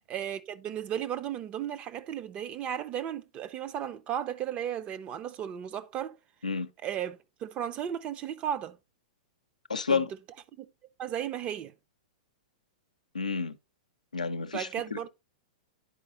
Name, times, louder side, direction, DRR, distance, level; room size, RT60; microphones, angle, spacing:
voice 1, 0.1-6.2 6.8-8.8 9.9-10.0 10.6-10.7 11.0-11.7 14.5-15.1, right 9 dB, 30° right, 0.6 m, -35 dB
voice 2, 9.7-10.1 13.1-13.6 14.1-15.1, left 5 dB, 85° left, 0.6 m, -30 dB
10.5 x 4.7 x 3.0 m
figure-of-eight pair, 105°, 4 cm